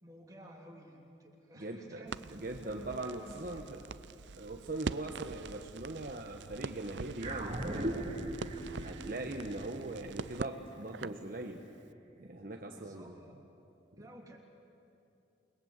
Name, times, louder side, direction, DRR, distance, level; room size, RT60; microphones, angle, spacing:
voice 1, 0.0-3.6 12.7-13.4 14.0-14.4, right 1 dB, 20° right, -1 dB, 3.3 m, -53 dB
voice 2, 1.6-2.0 2.3-3.8 4.3-8.3 8.8-11.6 12.2-13.2, right 2 dB, 50° right, 3 dB, 1.2 m, -41 dB
Crackle, 2.1-11.3, right 4 dB, 75° right, 0.5 m, -44 dB
sound 1, 7.2-11.8, right 1 dB, 35° right, 2.4 m, -40 dB
29.0 x 21.0 x 8.2 m, 2.7 s
head